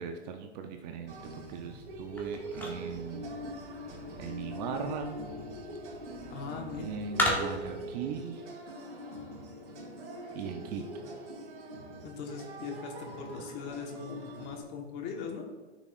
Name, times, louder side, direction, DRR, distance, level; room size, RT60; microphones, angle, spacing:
voice 1, 0.0-3.4 4.2-5.2 6.8-8.4 10.3-11.2, right 7 dB, 40° right, 6 dB, 0.7 m, -39 dB
sound 1, 1.0-7.9, left 1 dB, 5° left, 1.0 m, -38 dB
sound 2, 1.1-14.6, equal, 80° right, 2.3 m, -42 dB
voice 2, 6.3-6.9 12.0-15.5, left 5 dB, 30° left, 2 dB, 1.3 m, -40 dB
13.5 x 6.2 x 2.5 m, 1.2 s
hypercardioid pair, 135°, 34 cm